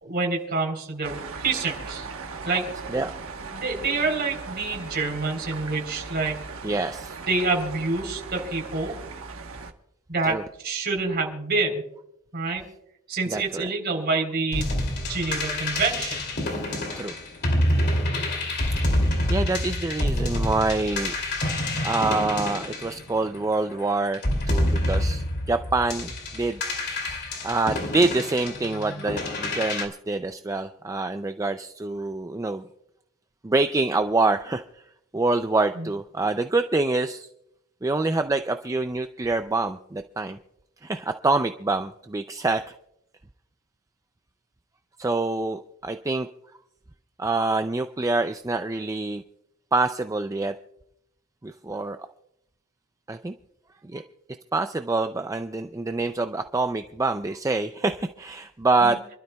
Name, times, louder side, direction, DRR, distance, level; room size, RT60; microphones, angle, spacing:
voice 1, 0.0-2.1 2.4-2.7 3.5-6.5 7.3-8.9 10.1-11.8 12.3-12.6 13.1-16.2 35.8-35.9 58.8-59.0, right 3 dB, 45° right, 1 dB, 3.7 m, -27 dB
sound 1, 1.0-9.7, right 4 dB, 70° right, 1.2 m, -38 dB
voice 2, 6.6-7.2 10.2-10.4 13.3-13.7 17.0-17.1 19.0-21.1 21.8-24.2 24.5-26.6 27.4-32.6 33.4-34.6 35.1-37.3 37.8-40.4 40.8-42.7 45.0-46.3 47.2-49.2 49.7-50.5 51.4-52.0 53.1-53.3 53.8-54.0 54.5-59.0, right 3 dB, 15° right, 8 dB, 0.4 m, -26 dB
sound 2, 14.5-23.5 24.1-29.8, left 1 dB, 50° left, 2.7 m, -27 dB
28.5 x 12.5 x 2.3 m, 0.79 s
head